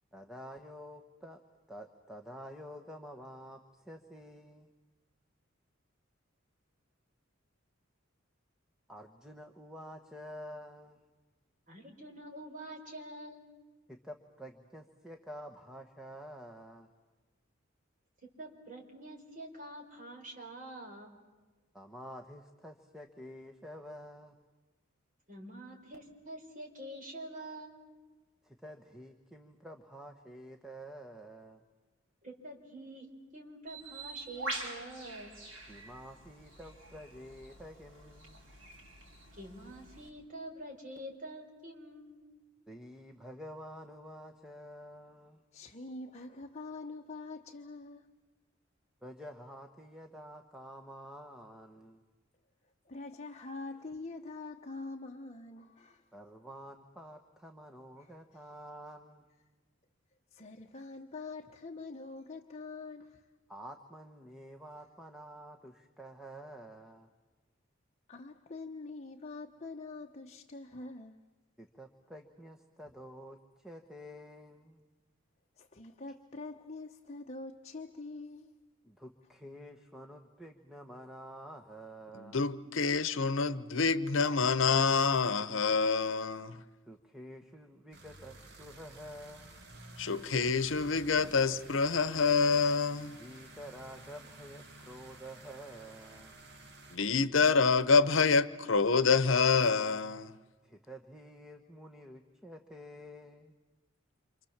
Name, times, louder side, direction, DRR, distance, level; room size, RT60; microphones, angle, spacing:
voice 1, 0.1-1.4 1.7-3.6 3.9-4.7 8.9-11.0 13.9-16.9 21.7-24.3 28.4-31.6 35.7-38.4 42.7-45.4 49.0-52.0 56.1-59.2 63.5-67.1 71.6-74.8 78.8-82.5 86.9-89.5 93.1-96.4 100.6-103.5, equal, 5° right, 1.2 m, -49 dB
voice 2, 11.7-13.5 18.4-21.1 25.3-27.8 32.2-33.1 33.3-35.4 39.4-42.2, right 1 dB, 40° right, 4.8 m, -46 dB
Bird, 33.7-40.1, right 2 dB, 80° right, 6.1 m, -45 dB
voice 3, 45.5-48.1 52.9-56.0 58.0-58.1 60.3-63.3 68.1-71.2 75.6-78.5, left 3 dB, 35° left, 1.1 m, -45 dB
voice 4, 82.1-86.6 90.0-93.1 96.9-100.3, left 4 dB, 70° left, 0.9 m, -27 dB
sound 1, 87.9-97.0, right 2 dB, 55° right, 2.1 m, -53 dB
28.5 x 26.5 x 7.3 m
head